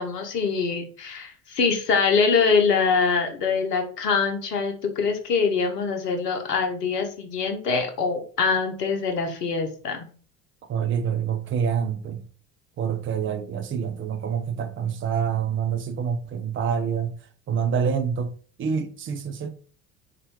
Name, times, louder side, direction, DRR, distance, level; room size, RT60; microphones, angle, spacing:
voice 1, 0.0-10.1, left 5 dB, 80° left, 0.9 m, -24 dB
voice 2, 10.7-12.2 12.8-17.1 17.5-18.3 18.6-19.5, right 7 dB, 25° right, 0.5 m, -26 dB
4.1 x 2.5 x 3.0 m
figure-of-eight pair, 60°, 47 cm